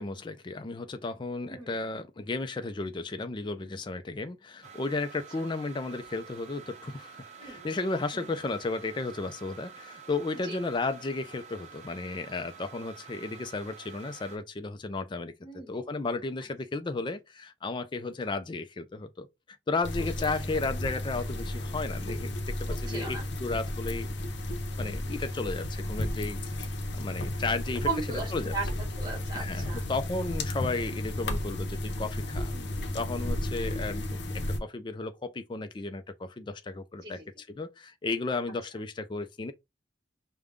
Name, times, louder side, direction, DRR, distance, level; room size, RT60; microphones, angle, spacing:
voice 1, 0.0-19.3 19.7-22.3 22.6-24.1 24.8-26.5 26.9-27.9 28.3-28.5 29.3-32.5 32.9-39.5, left 3 dB, 25° left, 0.4 m, -34 dB
sound 1, 4.6-14.4, right 6 dB, 40° right, 0.8 m, -49 dB
voice 2, 15.4-15.8 18.0-18.1 22.8-23.2 27.9-28.6 29.0-29.8 32.5-32.9 37.0-37.3, right 4 dB, 25° right, 1.9 m, -37 dB
sound 2, 19.8-34.6, left 1 dB, 70° left, 0.7 m, -33 dB
5.0 x 2.2 x 3.6 m
head